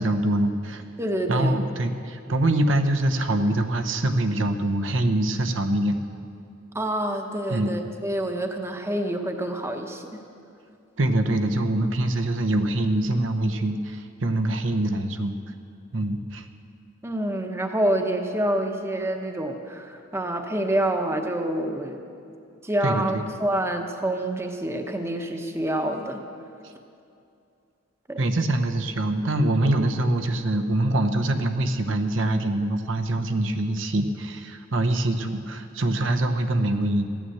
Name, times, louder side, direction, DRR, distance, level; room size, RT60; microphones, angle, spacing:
voice 1, 0.0-0.8 1.3-6.0 7.5-7.8 11.0-15.3 15.9-16.4 22.8-23.2 28.2-37.1, right 1 dB, 75° right, 6 dB, 0.9 m, -24 dB
voice 2, 1.0-1.6 6.7-10.2 17.0-22.0 22.6-26.2 28.1-28.3, right 1 dB, 15° right, 5 dB, 0.9 m, -27 dB
14.5 x 9.3 x 7.9 m, 2.5 s
head